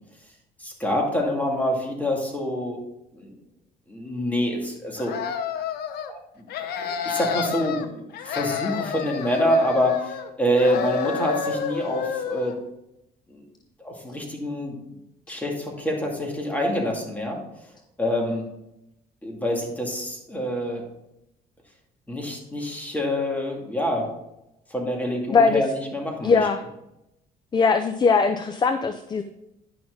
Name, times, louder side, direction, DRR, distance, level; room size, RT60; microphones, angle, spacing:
voice 1, 0.6-2.8 3.1-3.3 3.9-5.1 6.1-6.2 6.8-10.1 10.4-12.5 13.3-13.4 13.8-14.8 15.3-17.4 18.0-18.4 19.2-20.8 22.1-24.1 24.7-26.4, equal, 10° left, 0 dB, 2.3 m, -26 dB
sound 1, 5.0-6.1 6.5-7.9 8.1-10.3 10.6-12.6, left 7 dB, 70° left, 0.8 m, -30 dB
voice 2, 25.3-25.6 26.2-26.6 27.5-29.2, left 5 dB, 25° left, 8 dB, 0.5 m, -20 dB
10.0 x 6.0 x 3.9 m, 0.86 s
cardioid pair, 110°, 17 cm